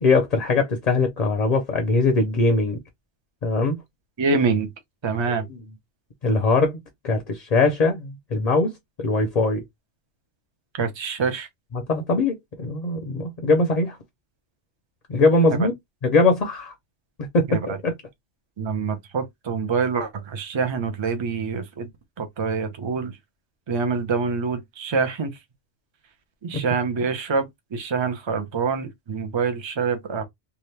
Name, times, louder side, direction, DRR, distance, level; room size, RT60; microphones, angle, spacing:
voice 1, 0.0-2.8 3.4-3.8 5.3-5.6 6.2-6.8 7.0-8.7 9.0-9.6 11.7-14.0 15.1-15.7 16.0-16.7 17.3-17.9, left 3 dB, 45° left, 0.5 m, -21 dB
voice 2, 4.2-4.7 5.0-5.5 10.8-11.5 17.5-17.8 18.6-21.9 22.2-23.2 23.7-25.4 26.4-30.2, right 5 dB, 35° right, 0.5 m, -25 dB
2.8 x 2.3 x 3.2 m
omnidirectional pair, 1.2 m